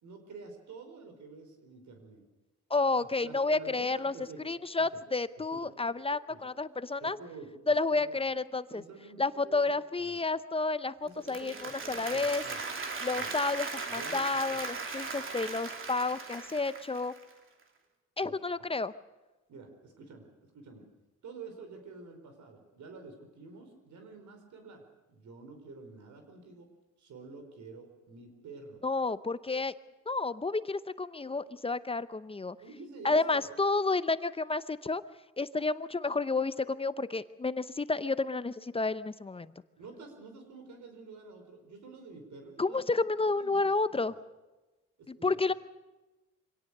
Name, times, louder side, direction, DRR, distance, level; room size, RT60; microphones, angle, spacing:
voice 1, 0.0-2.2 2.9-4.5 4.8-5.0 5.5-5.7 6.3-6.4 7.0-8.2 8.7-10.2 11.0-12.6 13.1-13.3 13.9-14.6 18.2-18.4 19.5-20.9 21.2-24.8 25.1-26.7 27.0-28.8 32.6-33.5 39.8-43.0 43.4-44.1 45.0-45.4, right 4 dB, 70° right, 5 dB, 4.8 m, -49 dB
voice 2, 2.7-4.1 4.4-7.2 7.7-8.8 9.2-12.4 13.0-17.1 18.2-18.9 28.8-29.7 30.1-32.6 33.0-35.0 35.4-39.5 42.6-44.1 45.1-45.5, left 3 dB, 20° left, 14 dB, 0.7 m, -30 dB
Applause, 11.1-17.3, right 4 dB, 45° right, 2.7 m, -38 dB
24.5 x 17.5 x 6.6 m, 1.1 s
cardioid pair, 90°, 30 cm